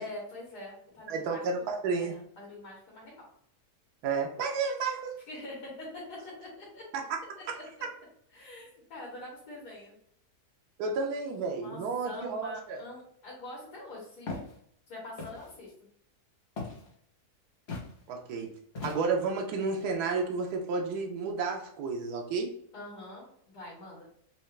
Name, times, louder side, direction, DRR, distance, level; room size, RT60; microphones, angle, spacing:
voice 1, 0.0-1.7 2.0-3.2 5.3-6.8 7.5-7.6 8.3-9.9 11.6-14.3 14.9-15.7 22.7-24.1, left 2 dB, 80° left, -4 dB, 1.7 m, -44 dB
voice 2, 1.1-2.2 4.0-5.1 7.1-7.2 7.5-7.6 10.8-12.8 18.1-18.5 18.8-22.5, right 4 dB, 90° right, 2 dB, 1.2 m, -31 dB
Walk footsteps, 14.3-14.5 15.2-15.5 16.6-16.9 17.7-17.9 18.7-19.3, left 3 dB, 45° left, 1.1 m, -38 dB
4.3 x 2.3 x 3.1 m, 0.67 s
omnidirectional pair, 1.7 m